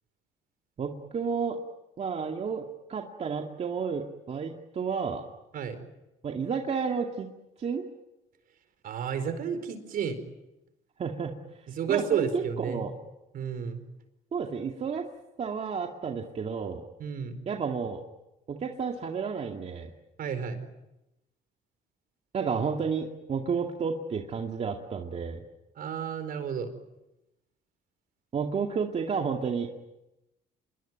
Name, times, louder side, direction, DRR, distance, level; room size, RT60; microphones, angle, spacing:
voice 1, 0.8-1.6 2.0-5.2 6.2-7.3 7.6-7.8 11.0-11.3 11.9-12.9 14.3-15.1 15.4-16.8 17.5-18.0 18.5-19.9 22.3-25.4 28.3-29.7, right 6 dB, 40° right, 2 dB, 2.3 m, -31 dB
voice 2, 8.8-10.2 11.7-12.9 13.3-13.8 17.0-17.3 20.2-20.6 25.8-26.7, right 7 dB, 60° right, 10 dB, 4.6 m, -31 dB
27.0 x 22.0 x 9.2 m, 0.94 s
cardioid pair, 110°, 17 cm